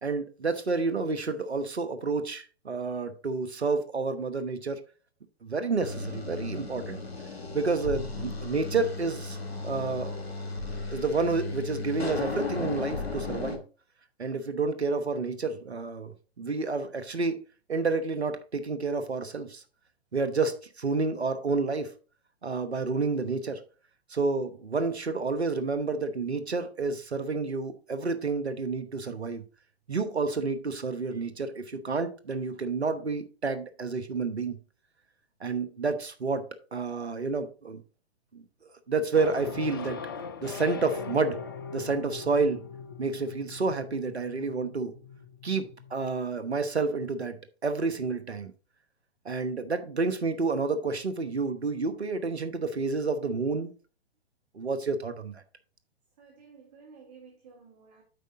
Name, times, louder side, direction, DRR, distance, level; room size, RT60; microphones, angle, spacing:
voice 1, 0.0-4.8 5.4-7.0 7.5-9.4 9.6-10.2 10.9-13.6 14.2-17.3 17.7-19.6 20.1-21.9 22.4-23.6 24.1-29.4 29.9-34.6 35.4-36.5 36.7-37.8 38.3-38.4 38.9-40.0 40.4-41.4 41.7-42.7 43.0-44.9 45.4-47.4 47.6-48.5 49.2-53.7 54.5-55.4, right 4 dB, 80° right, 1.2 m, -29 dB
sound 1, 5.8-13.6, left 3 dB, 70° left, 2.0 m, -35 dB
sound 2, 39.1-46.1, left 6 dB, 25° left, 0.3 m, -40 dB
voice 2, 56.2-58.0, right 5 dB, 40° right, 1.9 m, -53 dB
8.2 x 5.2 x 3.8 m
figure-of-eight pair, 120°, 32 cm